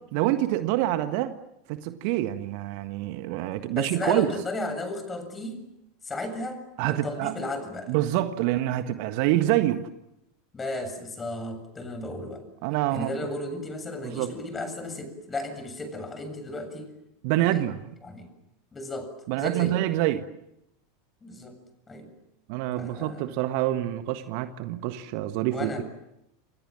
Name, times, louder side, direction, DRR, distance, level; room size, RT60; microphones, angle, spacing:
voice 1, 0.1-1.4 1.7-4.3 6.8-7.3 7.9-9.8 12.6-13.1 14.0-14.3 17.2-17.8 19.3-20.3 22.5-25.8, right 14 dB, 50° right, 10 dB, 1.6 m, -26 dB
voice 2, 3.7-5.6 6.0-7.9 10.5-12.4 12.9-16.9 17.5-17.6 18.0-18.3 18.7-19.8 21.2-21.6 21.9-22.1 22.8-23.3 25.5-25.8, left 2 dB, 20° left, 8 dB, 7.6 m, -34 dB
28.5 x 28.0 x 7.6 m, 0.85 s
figure-of-eight pair, 85°, 0 cm